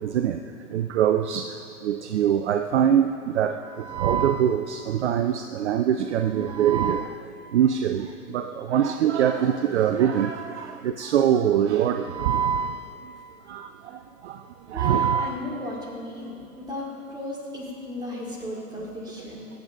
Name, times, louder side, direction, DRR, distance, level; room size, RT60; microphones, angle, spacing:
voice 1, 0.0-0.4 0.7-1.6 1.8-7.2 7.5-8.1 8.3-12.9 13.5-13.7 14.2-14.4 14.7-15.4, right 9 dB, 50° right, 8 dB, 0.5 m, -23 dB
voice 2, 14.7-19.5, left 1 dB, 10° right, -4 dB, 2.2 m, -35 dB
22.5 x 8.0 x 2.6 m, 2.8 s
figure-of-eight pair, 110°, 44 cm